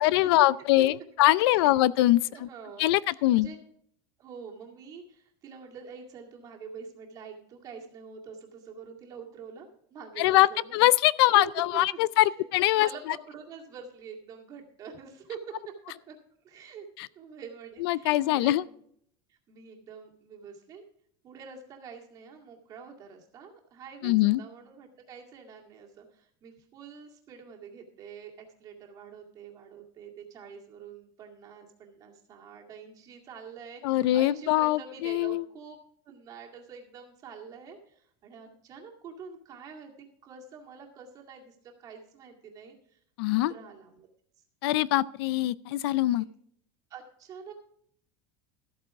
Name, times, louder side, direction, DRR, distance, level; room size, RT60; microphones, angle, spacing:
voice 1, 0.0-2.5 2.8-3.5 10.2-13.2 17.0-17.1 17.8-18.6 24.0-24.4 33.8-35.4 43.2-43.5 44.6-46.2, left 16 dB, 75° left, 20 dB, 0.4 m, -23 dB
voice 2, 1.4-1.8 2.3-3.6 4.2-10.8 11.3-11.4 12.2-12.5 12.7-15.7 16.1-16.2 16.4-16.9 17.2-18.8 19.3-20.8 21.2-24.1 24.4-35.8 36.1-39.9 40.2-43.0 43.3-44.1 46.2-46.3 46.9-47.5, right 6 dB, 25° right, 1 dB, 2.1 m, -46 dB
13.5 x 8.6 x 4.7 m, 0.65 s
cardioid pair, 180°, 13 cm